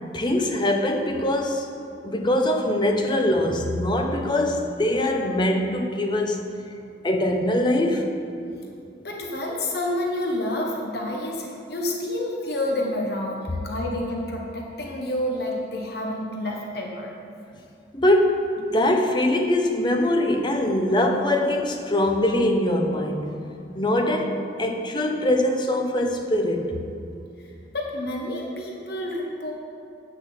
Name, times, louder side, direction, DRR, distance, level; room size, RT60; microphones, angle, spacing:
voice 1, 0.1-1.7 2.0-6.4 7.0-8.0 17.9-23.4 23.7-26.8, left 1 dB, 25° left, 3 dB, 0.8 m, -22 dB
voice 2, 9.0-17.1 27.7-29.5, left 1 dB, 55° left, -1 dB, 1.2 m, -29 dB
8.8 x 6.2 x 7.6 m, 2.6 s
head